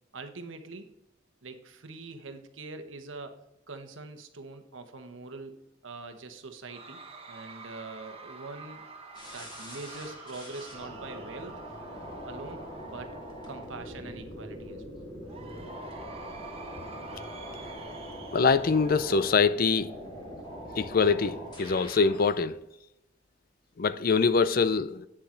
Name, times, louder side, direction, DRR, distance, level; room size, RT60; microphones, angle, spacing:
voice 1, 0.1-0.9 1.4-7.0 7.3-8.8 9.3-11.6 11.9-13.2 13.5-15.0, right 3 dB, 75° right, 1.1 m, -43 dB
Cheering / Crowd, 6.7-14.0 15.2-20.0, right 4 dB, 30° right, 1.3 m, -48 dB
sound 1, 9.1-22.3, equal, 25° left, 2.8 m, -42 dB
voice 2, 18.3-19.9 20.8-22.6 23.8-25.1, left 5 dB, 45° left, 0.5 m, -24 dB
9.0 x 7.4 x 3.8 m
head